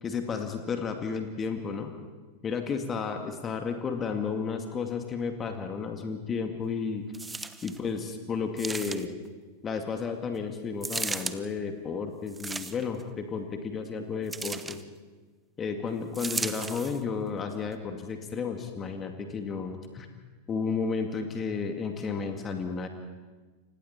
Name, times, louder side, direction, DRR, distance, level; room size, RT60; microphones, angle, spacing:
voice 1, 0.0-1.9 2.4-7.1 7.6-9.2 9.6-14.8 15.6-20.1 20.5-22.9, left 5 dB, 25° left, 5 dB, 2.2 m, -32 dB
sound 1, 7.1-7.8 8.6-9.3 10.8-11.4 12.3-13.0 14.3-14.8 16.1-17.0 17.7-17.8, right 3 dB, 10° right, 0.9 m, -35 dB
29.5 x 26.0 x 4.4 m, 1.3 s
figure-of-eight pair, 90°, 0 cm